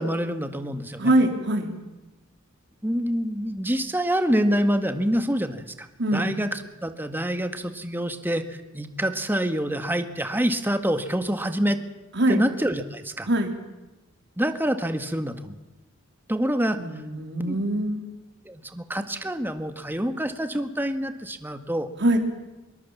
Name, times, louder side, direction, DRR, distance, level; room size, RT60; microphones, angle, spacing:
voice 1, 0.0-1.1 2.8-5.9 6.1-8.4 8.7-11.8 12.3-13.3 14.4-15.6 16.3-16.8 17.4-17.6 18.5-21.9, equal, 10° right, 7 dB, 1.8 m, -26 dB
voice 2, 1.0-1.7 6.0-6.4 12.2-12.4 13.3-13.5 16.8-18.1 22.0-22.2, right 1 dB, 60° right, 4 dB, 3.7 m, -23 dB
25.0 x 23.0 x 7.4 m, 1.1 s
head